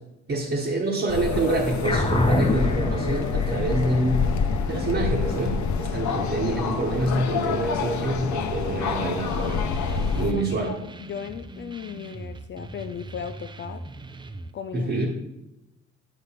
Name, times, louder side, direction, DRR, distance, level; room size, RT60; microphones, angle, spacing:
voice 1, 0.3-4.3 4.7-9.8 10.2-10.7 14.7-15.1, right 2 dB, 40° right, -3 dB, 1.3 m, -26 dB
sound 1, 1.1-10.3, left 5 dB, 70° left, 0.8 m, -27 dB
sound 2, 1.8-6.6, left 2 dB, 15° left, 0.8 m, -28 dB
sound 3, 9.3-14.5, right 2 dB, 15° right, 0.5 m, -41 dB
voice 2, 10.3-13.9 14.5-14.9, left 7 dB, 40° left, 8 dB, 0.4 m, -36 dB
8.6 x 3.3 x 5.7 m, 0.92 s
cardioid pair, 90°, 30 cm